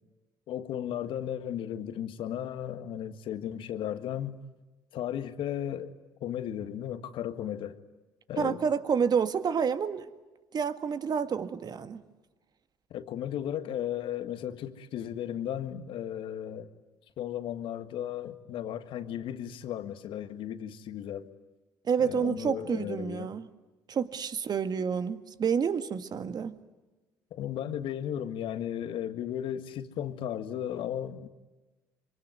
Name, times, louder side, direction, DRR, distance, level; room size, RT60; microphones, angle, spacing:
voice 1, 0.5-4.4 4.9-5.9 6.2-7.8 8.3-8.6 12.9-16.7 17.2-21.3 22.0-23.3 27.3-31.3, left 10 dB, 60° left, 1.8 m, -35 dB
voice 2, 8.4-10.1 10.5-12.0 21.8-23.5 23.9-26.6, right 6 dB, 45° right, 1.9 m, -29 dB
25.5 x 24.5 x 9.6 m
hypercardioid pair, 60°, 10 cm